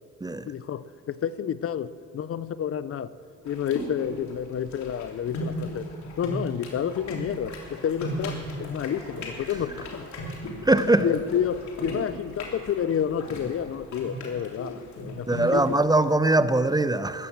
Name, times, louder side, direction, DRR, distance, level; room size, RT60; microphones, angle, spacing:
voice 1, 0.5-3.1 3.4-5.9 6.2-10.1 11.0-15.8, left 8 dB, 50° left, 0.6 m, -30 dB
sound 1, 3.5-15.7, equal, 70° left, 3.4 m, -37 dB
voice 2, 10.6-11.1 15.3-17.3, right 2 dB, 15° right, 0.5 m, -21 dB
14.5 x 12.5 x 7.3 m
cardioid pair, 90°, 30 cm